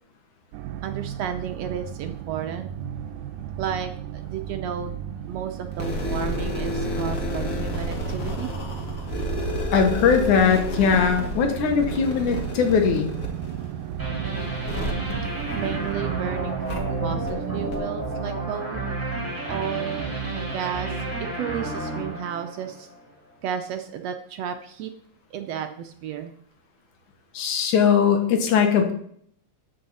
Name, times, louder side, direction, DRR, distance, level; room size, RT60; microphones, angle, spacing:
Low sustained drone, 0.5-17.7, right 10 dB, 90° right, 2.0 m, -35 dB
voice 1, 0.8-2.7 3.6-5.0 5.3-8.5 15.5-16.6 17.0-18.8 19.4-21.0 21.3-22.9 23.4-24.9 25.3-26.3, right 8 dB, 75° right, 6 dB, 1.6 m, -32 dB
sound 1, 5.7-16.1 16.7-16.8 17.3-17.4 17.7-17.8, left 1 dB, 40° left, 1.4 m, -31 dB
voice 2, 9.7-13.1 27.3-28.9, left 6 dB, 85° left, 4 dB, 2.8 m, -20 dB
sound 2, 14.0-23.0, right 2 dB, 5° right, 2.3 m, -31 dB
13.5 x 5.6 x 4.2 m, 0.65 s
omnidirectional pair, 3.4 m